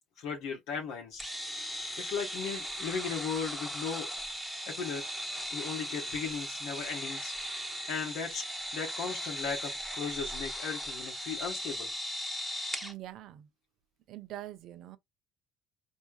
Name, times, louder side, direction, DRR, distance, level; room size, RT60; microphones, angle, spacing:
voice 1, 0.2-1.2 2.0-4.1 4.7-5.0 5.5-7.6 7.9-8.5 8.7-11.9, left 6 dB, 70° left, 0.9 m, -37 dB
sound 1, 1.2-12.9, equal, ahead, 1.0 m, -38 dB
voice 2, 12.8-13.5 14.1-15.0, right 14 dB, 60° right, 0.5 m, -44 dB
4.4 x 2.7 x 2.3 m
hypercardioid pair, 65°, 0 cm